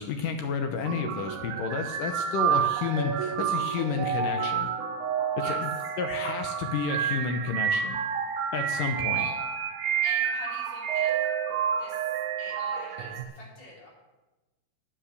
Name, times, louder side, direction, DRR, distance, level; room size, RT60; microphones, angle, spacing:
voice 1, 0.0-4.7 5.4-5.7 6.0-8.0 8.5-9.2, left 5 dB, 75° left, 5 dB, 2.0 m, -31 dB
sound 1, 0.8-13.2, right 8 dB, 90° right, 1.6 m, -29 dB
voice 2, 10.0-11.2 11.8-12.0 12.4-13.9, left 2 dB, 45° left, -5 dB, 4.9 m, -44 dB
10.0 x 8.9 x 6.9 m, 1.1 s
omnidirectional pair, 4.6 m